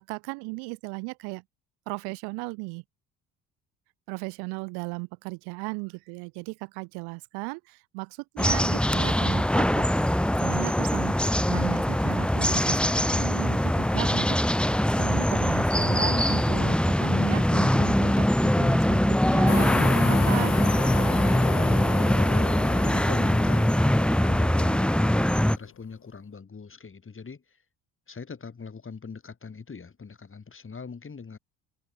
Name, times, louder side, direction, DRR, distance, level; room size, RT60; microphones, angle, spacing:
voice 1, 0.0-1.4 1.9-2.8 4.1-9.9 10.3-12.8 13.1-20.6 21.0-21.3, right 32 dB, 85° right, 1.5 m, -36 dB
sound 1, 8.4-25.6, left 1 dB, 5° left, 1.5 m, -22 dB
sound 2, 19.5-25.7, left 11 dB, 50° left, 1.5 m, -35 dB
voice 2, 22.3-23.8 24.2-27.6 28.1-31.4, left 5 dB, 35° left, 7.3 m, -42 dB
supercardioid pair, 70°, 38 cm